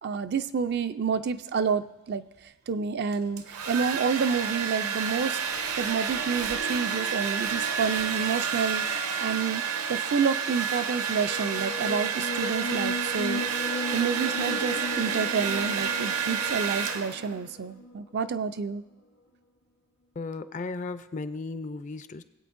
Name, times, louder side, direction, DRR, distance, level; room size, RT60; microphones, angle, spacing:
voice 1, 0.0-2.2 2.7-5.4 5.8-9.6 9.9-13.4 13.9-18.8, right 6 dB, 50° right, 11 dB, 0.4 m, -29 dB
Domestic sounds home sounds, 3.1-17.4, right 6 dB, 70° right, 0.8 m, -30 dB
sound 1, 4.8-18.4, left 1 dB, 75° left, 1.6 m, -38 dB
voice 2, 20.2-22.2, left 3 dB, 35° left, 12 dB, 0.4 m, -35 dB
21.0 x 8.4 x 2.6 m, 1.0 s
head